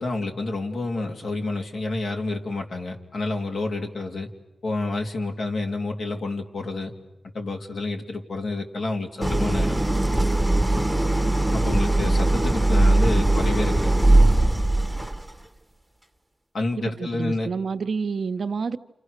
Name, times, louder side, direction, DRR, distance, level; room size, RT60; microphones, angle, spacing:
voice 1, 0.0-4.3 4.6-6.9 7.3-9.8 11.5-14.0 16.5-17.5, left 2 dB, 75° left, 2.9 m, -29 dB
Idling, 9.2-15.3, right 1 dB, 5° right, 1.1 m, -20 dB
voice 2, 17.0-18.8, right 5 dB, 70° right, 0.8 m, -28 dB
29.5 x 27.0 x 6.6 m
cardioid pair, 65°, 0 cm